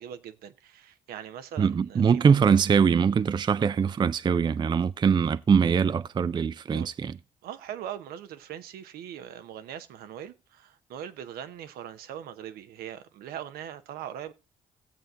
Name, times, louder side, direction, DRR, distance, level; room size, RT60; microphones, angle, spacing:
voice 1, 0.0-2.4 6.7-6.9 7.4-14.3, right 10 dB, 70° right, 0.8 m, -41 dB
voice 2, 1.6-7.2, right 6 dB, 30° right, 0.4 m, -22 dB
18.0 x 7.7 x 2.4 m
hypercardioid pair, 50°, 16 cm